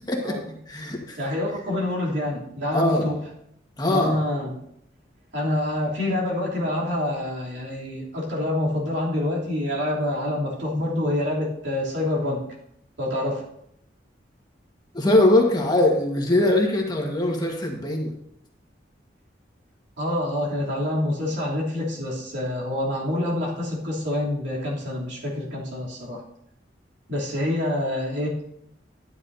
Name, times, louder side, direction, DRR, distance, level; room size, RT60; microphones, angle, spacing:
voice 1, 0.1-1.2 2.7-3.1 3.8-4.2 14.9-18.1, left 1 dB, 20° left, 1 dB, 1.5 m, -21 dB
voice 2, 1.2-3.2 3.9-4.6 5.3-12.4 13.0-13.4 20.0-26.2 27.1-28.4, left 1 dB, 75° right, -4 dB, 3.1 m, -26 dB
12.5 x 9.5 x 2.7 m, 0.75 s
head